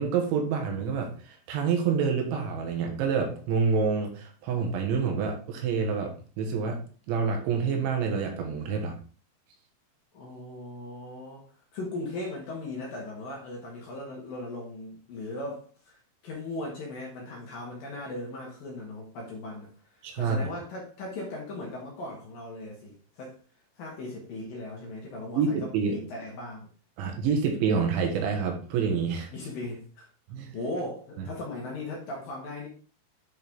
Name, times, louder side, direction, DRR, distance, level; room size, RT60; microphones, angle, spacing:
voice 1, 0.0-6.8 7.1-8.9 20.0-20.4 25.4-26.0 27.0-29.3 30.3-30.6, right 5 dB, 80° right, 3 dB, 3.6 m, -27 dB
voice 2, 10.1-11.5 11.7-16.0 16.2-19.7 20.2-23.4 23.8-26.7 29.3-30.1 30.5-32.7, left 2 dB, 60° left, -1 dB, 2.8 m, -38 dB
9.6 x 4.6 x 3.5 m, 0.39 s
omnidirectional pair, 5.4 m